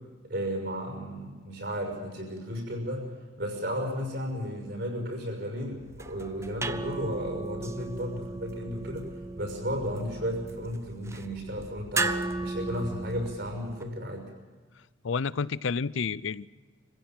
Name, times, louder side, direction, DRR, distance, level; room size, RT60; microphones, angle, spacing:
voice 1, 0.2-3.1 3.4-9.1 9.4-14.3, equal, 55° right, 2 dB, 6.3 m, -34 dB
sound 1, 5.8-13.8, right 2 dB, 15° right, 0.6 m, -36 dB
voice 2, 15.0-16.5, left 5 dB, 85° left, 20 dB, 0.5 m, -30 dB
25.0 x 16.0 x 7.6 m, 1.5 s
head